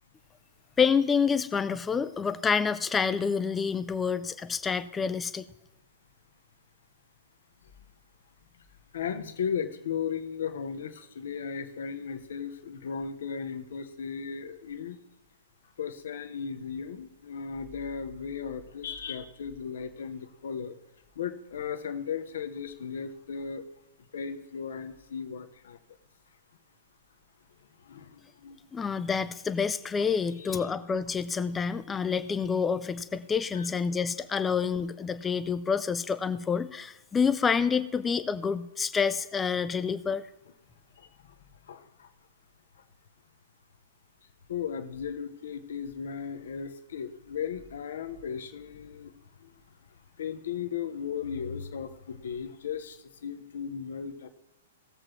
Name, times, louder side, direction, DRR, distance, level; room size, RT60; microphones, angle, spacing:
voice 1, 0.8-5.5 28.7-40.3, left 6 dB, 15° left, 13 dB, 0.5 m, -28 dB
voice 2, 8.9-15.0 15.8-20.8 21.2-23.6 24.1-25.8 27.8-28.6 30.4-30.7 33.5-33.7 41.0-41.1 41.7-42.1 44.5-49.1 49.4-49.5 50.2-54.3, left 7 dB, 55° left, 7 dB, 0.9 m, -36 dB
19.0 x 7.5 x 3.0 m, 1.0 s
figure-of-eight pair, 110°, 0 cm